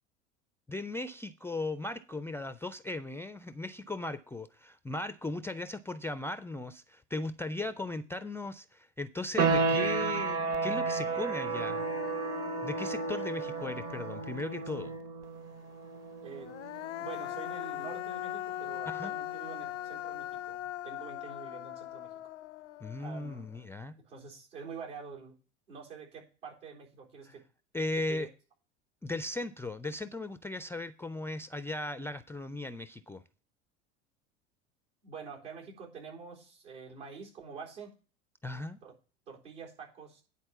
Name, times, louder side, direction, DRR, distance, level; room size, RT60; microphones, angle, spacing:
voice 1, 0.7-11.8 12.6-14.9 18.9-19.1 22.8-24.0 27.3-27.4 27.7-28.3 29.0-33.2 38.4-38.8, left 2 dB, 5° left, 0.3 m, -37 dB
sound 1, 9.4-19.9, right 4 dB, 45° right, 1.4 m, -34 dB
Human voice, 10.5-10.6 11.0-14.7 16.3-23.6, left 13 dB, 80° left, 0.5 m, -41 dB
voice 2, 16.2-16.5 17.0-22.1 23.0-23.5 24.0-25.4 25.7-27.4 28.1-28.3 35.0-37.9 38.8-39.0 39.3-40.2, right 6 dB, 75° right, 4.0 m, -46 dB
10.0 x 4.2 x 7.0 m
hypercardioid pair, 80°, 36 cm